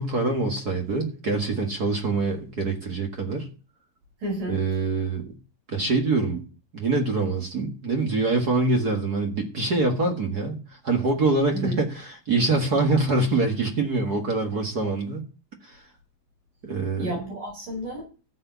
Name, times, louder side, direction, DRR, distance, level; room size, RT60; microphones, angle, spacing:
voice 1, 0.0-3.5 4.5-5.2 5.7-6.4 6.7-10.5 10.8-15.2 15.6-15.8 16.6-17.1, right 3 dB, 40° right, 2 dB, 1.4 m, -24 dB
voice 2, 4.2-4.6 11.5-11.8 17.0-18.0, right 1 dB, 65° right, -1 dB, 6.4 m, -31 dB
13.5 x 5.6 x 8.0 m, 0.36 s
omnidirectional pair, 4.1 m